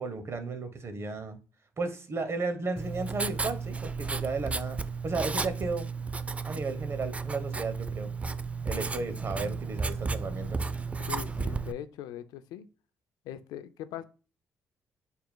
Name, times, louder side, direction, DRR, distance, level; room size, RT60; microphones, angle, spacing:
voice 1, 0.0-1.4 1.8-5.9 6.4-8.1 8.6-10.6, right 3 dB, 40° right, 0.9 m, -34 dB
Writing, 2.8-11.7, right 4 dB, 20° right, 0.3 m, -33 dB
voice 2, 11.1-12.7 13.2-14.0, left 11 dB, 80° left, 0.4 m, -40 dB
4.3 x 3.5 x 2.2 m
supercardioid pair, 65°, 7 cm